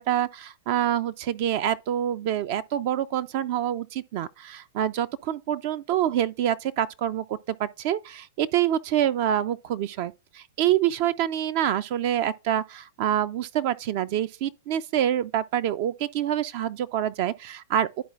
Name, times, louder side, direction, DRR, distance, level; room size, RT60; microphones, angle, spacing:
voice 1, 0.0-18.0, right 11 dB, 45° right, 0.4 m, -26 dB
11.5 x 4.2 x 2.4 m
figure-of-eight pair, 100°, 0 cm